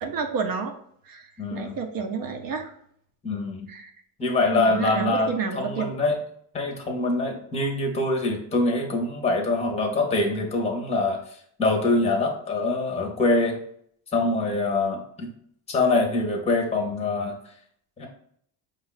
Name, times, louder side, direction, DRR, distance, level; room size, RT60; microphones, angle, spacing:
voice 1, 0.0-0.7 1.1-2.7 3.7-3.9 4.5-5.8, right 5 dB, 45° right, 5 dB, 0.7 m, -30 dB
voice 2, 1.4-1.8 3.2-3.7 4.2-5.3 5.5-6.1 6.5-11.2 11.6-13.6 14.1-15.3 15.7-17.4 18.0-18.1, left 2 dB, 15° left, 1 dB, 0.8 m, -24 dB
4.9 x 2.4 x 3.9 m, 0.67 s
cardioid pair, 130°, 49 cm